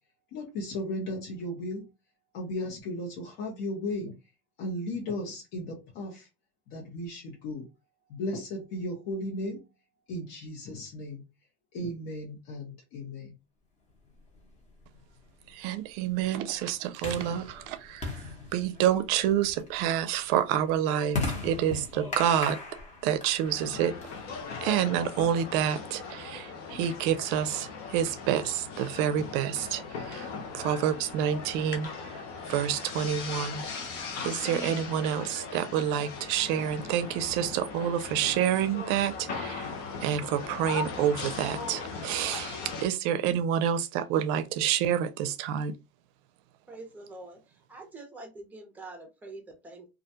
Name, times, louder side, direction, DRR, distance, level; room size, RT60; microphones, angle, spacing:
voice 1, 0.3-1.9 2.3-4.1 4.6-6.3 6.7-7.7 8.1-9.6 10.1-11.2 11.7-13.3, left 1 dB, 60° left, 1.0 m, -35 dB
sound 1, 14.3-24.7, left 3 dB, 20° left, 0.9 m, -39 dB
voice 2, 15.5-18.2 18.5-22.6 23.0-23.9 24.6-30.3 30.5-32.1 32.5-33.7 34.2-39.7 40.0-45.7, right 10 dB, 60° right, 0.5 m, -28 dB
sound 2, 23.4-42.9, left 5 dB, 85° left, 0.8 m, -39 dB
voice 3, 46.7-47.4 47.7-49.9, right 2 dB, 5° right, 0.6 m, -45 dB
2.4 x 2.1 x 2.7 m
supercardioid pair, 115°, 32 cm